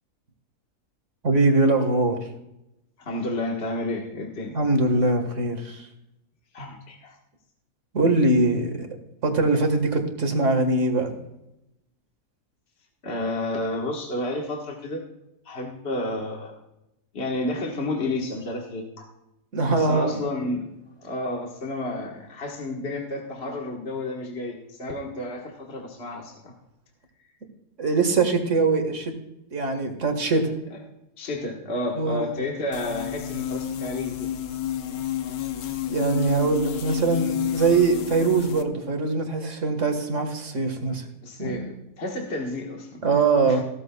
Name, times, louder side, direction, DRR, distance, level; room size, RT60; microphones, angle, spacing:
voice 1, 1.2-2.2 4.5-5.9 7.9-8.9 9.2-11.1 19.5-20.2 27.8-29.1 29.5-30.5 32.0-32.4 35.9-41.0 41.4-41.6 43.0-43.6, right 3 dB, 50° right, 6 dB, 1.8 m, -22 dB
voice 2, 3.0-4.5 6.5-7.2 13.0-15.0 15.4-16.6 17.1-19.1 19.7-20.6 21.0-26.5 31.2-34.3 41.2-43.6, left 2 dB, 45° left, 0 dB, 1.6 m, -31 dB
sound 1, 32.7-38.6, left 11 dB, 70° left, 1.2 m, -30 dB
16.0 x 13.5 x 2.3 m, 0.87 s
omnidirectional pair, 1.6 m